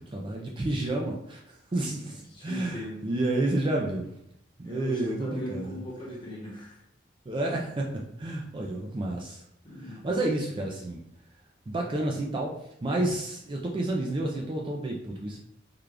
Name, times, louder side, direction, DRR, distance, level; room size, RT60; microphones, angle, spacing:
voice 1, 0.0-4.1 4.6-5.8 7.3-9.4 9.8-11.0 11.7-15.4, right 2 dB, 25° right, -1 dB, 0.3 m, -30 dB
voice 2, 2.0-3.1 4.6-6.8 7.4-7.6 9.6-10.1, equal, 25° left, -4 dB, 1.0 m, -40 dB
3.7 x 2.3 x 3.3 m, 0.74 s
head